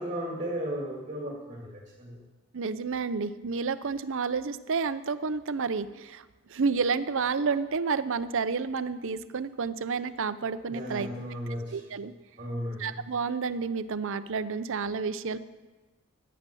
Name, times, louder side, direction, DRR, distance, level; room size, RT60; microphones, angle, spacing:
voice 1, 0.0-2.2 10.7-11.8 12.4-13.0, equal, 30° right, -3 dB, 2.5 m, -35 dB
voice 2, 2.5-6.2 6.5-11.1 11.7-12.1 12.8-15.4, right 5 dB, 60° right, 13 dB, 0.6 m, -30 dB
14.5 x 9.5 x 6.9 m, 1.2 s
head